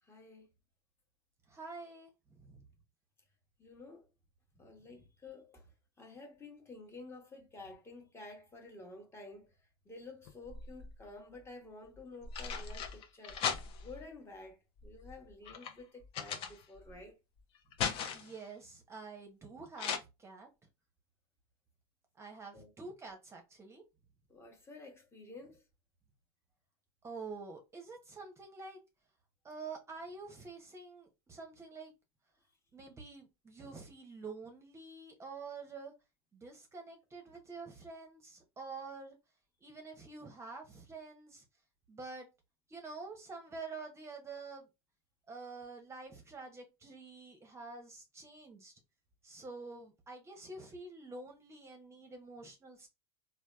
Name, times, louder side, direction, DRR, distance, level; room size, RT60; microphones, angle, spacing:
voice 1, 0.0-0.5 3.6-4.1 4.6-5.7 6.0-9.5 9.8-13.4 13.8-17.2 22.5-22.7 24.3-25.6, left 2 dB, 20° left, 1.0 m, -51 dB
voice 2, 1.5-2.6 18.1-20.5 22.1-23.8 27.0-28.8 29.4-31.9 32.7-35.9 36.3-39.2 39.6-41.4 41.9-42.3 42.7-44.7 45.3-48.7 49.2-52.9, right 4 dB, 20° right, 0.7 m, -48 dB
sound 1, 10.2-11.1 11.9-14.0 14.8-17.0 17.4-18.4 19.8-20.0, left 7 dB, 45° left, 0.6 m, -39 dB
3.3 x 2.3 x 2.2 m
hypercardioid pair, 95°, 13 cm